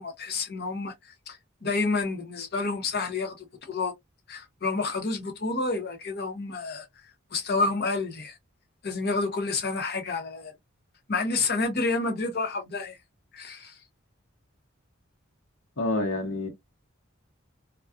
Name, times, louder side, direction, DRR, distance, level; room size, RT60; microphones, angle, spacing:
voice 1, 0.0-3.9 4.3-6.9 7.3-8.4 8.8-10.5 11.1-13.0 13.3-13.8, left 3 dB, 55° left, 0.8 m, -29 dB
voice 2, 15.8-16.5, left 2 dB, 90° left, 1.0 m, -27 dB
2.4 x 2.2 x 2.4 m
head